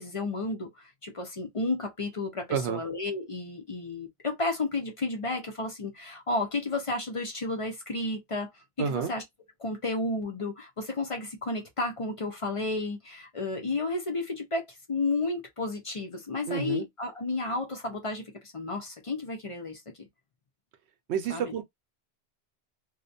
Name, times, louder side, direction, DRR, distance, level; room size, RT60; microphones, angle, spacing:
voice 1, 0.0-8.5 8.8-9.2 9.6-20.1 21.3-21.5, left 2 dB, 40° left, 0.5 m, -32 dB
voice 2, 8.8-9.1 16.5-16.8 21.1-21.6, right 7 dB, 80° right, 0.9 m, -29 dB
2.4 x 2.2 x 2.6 m
omnidirectional pair, 1.1 m